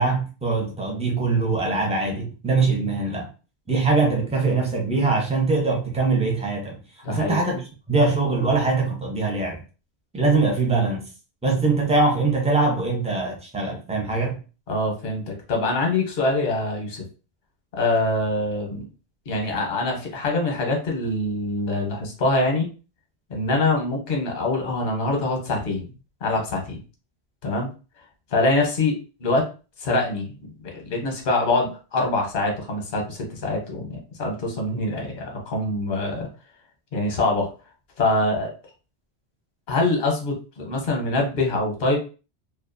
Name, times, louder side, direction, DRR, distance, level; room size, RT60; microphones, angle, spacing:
voice 1, 0.0-3.3 3.7-6.8 7.1-9.6 10.1-11.0 11.4-14.4, right 3 dB, 10° right, 0.4 m, -22 dB
voice 2, 7.0-7.4 14.7-17.0 17.7-18.8 19.3-22.7 23.3-25.9 26.2-26.8 27.4-27.7 28.3-29.5 29.8-36.3 36.9-37.5 38.0-38.5 39.7-42.0, left 2 dB, 50° left, 0.9 m, -24 dB
2.4 x 2.3 x 2.5 m
omnidirectional pair, 1.1 m